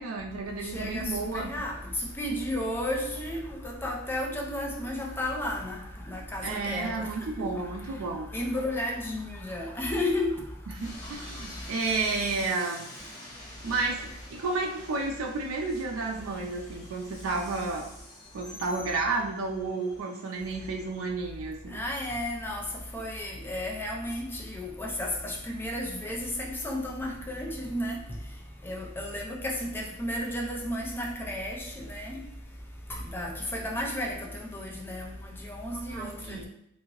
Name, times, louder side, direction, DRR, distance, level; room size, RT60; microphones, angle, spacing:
voice 1, 0.0-1.5 6.4-8.3 10.7-12.9 13.6-17.9 18.3-21.8 35.7-36.4, right 3 dB, 70° right, 1 dB, 0.4 m, -32 dB
voice 2, 0.6-1.7 2.2-5.8 6.1-7.1 7.4-7.5 8.3-10.3 21.7-22.7 22.9-28.0 28.6-32.1 33.1-36.4, left 1 dB, 10° left, -1 dB, 0.4 m, -33 dB
Train, 10.7-21.1, left 1 dB, 35° left, 1.1 m, -47 dB
2.8 x 2.6 x 2.9 m, 0.79 s
head